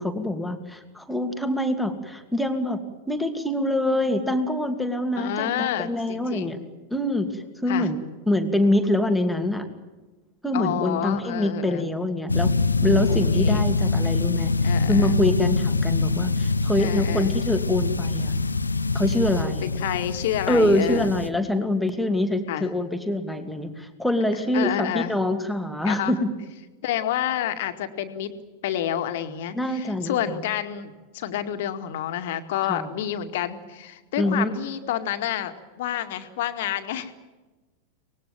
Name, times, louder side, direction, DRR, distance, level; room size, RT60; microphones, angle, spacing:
voice 1, 0.0-2.8 3.1-6.6 6.9-8.0 8.3-9.7 10.4-12.5 12.8-18.4 18.9-19.7 20.5-26.3 29.5-30.2 32.7-32.9 34.2-34.5, left 1 dB, ahead, 6 dB, 2.7 m, -25 dB
voice 2, 5.2-6.6 7.7-7.9 10.5-11.9 13.1-13.7 14.6-15.2 16.8-17.4 19.6-21.1 22.5-22.7 24.5-25.1 25.8-26.1 26.8-28.3 28.6-37.1, left 11 dB, 55° left, 8 dB, 2.1 m, -29 dB
sound 1, 12.3-21.3, left 3 dB, 80° left, 1.0 m, -24 dB
24.5 x 20.0 x 9.1 m, 1.2 s
figure-of-eight pair, 90°, 0 cm